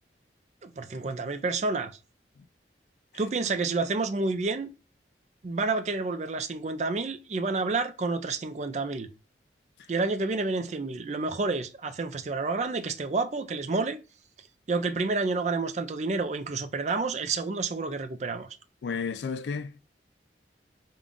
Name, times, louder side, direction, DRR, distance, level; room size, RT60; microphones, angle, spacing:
voice 1, 0.6-2.0 3.1-4.7 5.4-9.1 9.9-14.0 14.7-18.5, right 3 dB, 40° right, 0.4 m, -29 dB
voice 2, 18.8-19.8, left 5 dB, 75° left, 0.4 m, -33 dB
3.6 x 2.3 x 3.7 m
head